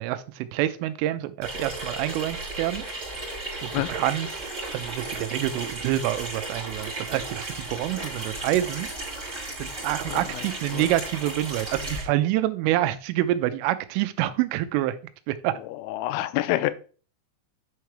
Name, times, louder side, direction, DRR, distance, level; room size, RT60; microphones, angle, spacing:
voice 1, 0.0-2.8 3.6-4.4 4.7-8.9 9.6-15.0 15.3-15.5, right 14 dB, 90° right, 3.2 m, -27 dB
Water tap faucet / Sink (filling or washing), 1.4-12.0, right 2 dB, 15° right, 3.6 m, -35 dB
voice 2, 10.1-10.9 15.6-16.7, left 16 dB, 85° left, 3.2 m, -28 dB
9.1 x 5.9 x 3.2 m
omnidirectional pair, 5.7 m